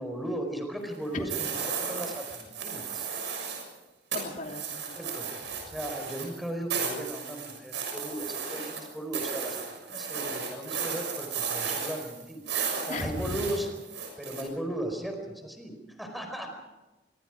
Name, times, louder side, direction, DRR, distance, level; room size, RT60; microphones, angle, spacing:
voice 1, 0.0-3.1 4.9-5.3 5.6-12.4 12.8-13.7 14.2-16.5, right 1 dB, ahead, 4 dB, 4.6 m, -36 dB
sound 1, 1.3-3.7 4.1-14.4, right 6 dB, 85° right, 6.7 m, -34 dB
voice 2, 4.1-5.0 5.7-5.8 12.9-13.4, left 2 dB, 50° left, 3 dB, 2.9 m, -36 dB
26.0 x 23.5 x 5.0 m, 1.1 s
head